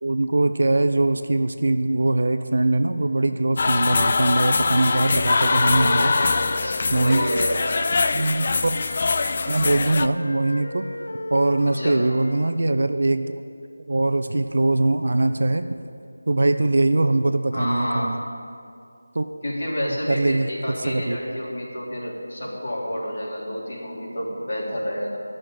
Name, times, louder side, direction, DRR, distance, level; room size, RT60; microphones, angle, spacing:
voice 1, 0.0-6.1 6.9-7.3 8.1-8.8 9.5-10.8 11.3-13.4 13.9-15.6 16.3-18.2 19.1-19.3 19.8-20.5 20.8-21.2, right 2 dB, 55° right, 8 dB, 0.6 m, -22 dB
sound 1, 3.6-10.1, left 4 dB, 30° left, 0.3 m, -23 dB
Wind instrument woodwind instrument, 4.6-8.4 8.7-12.5, left 1 dB, 75° left, 0.8 m, -36 dB
voice 2, 5.5-6.3 6.6-7.8 11.6-12.0 17.5-18.1 19.4-25.2, equal, 50° left, -6 dB, 3.7 m, -29 dB
12.0 x 6.5 x 9.0 m, 2.3 s
figure-of-eight pair, 175°, 0 cm